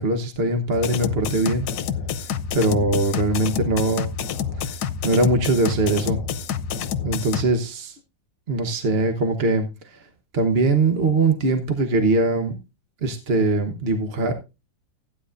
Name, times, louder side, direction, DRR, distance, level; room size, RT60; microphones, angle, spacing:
voice 1, 0.0-1.7 2.5-4.1 4.6-4.7 5.0-6.2 7.0-8.0 8.5-10.0 10.3-12.6 13.0-14.3, right 2 dB, 40° right, 1.0 m, -21 dB
sound 1, 0.7-7.4, left 7 dB, 75° left, 1.5 m, -28 dB
14.5 x 9.9 x 2.5 m
omnidirectional pair, 2.0 m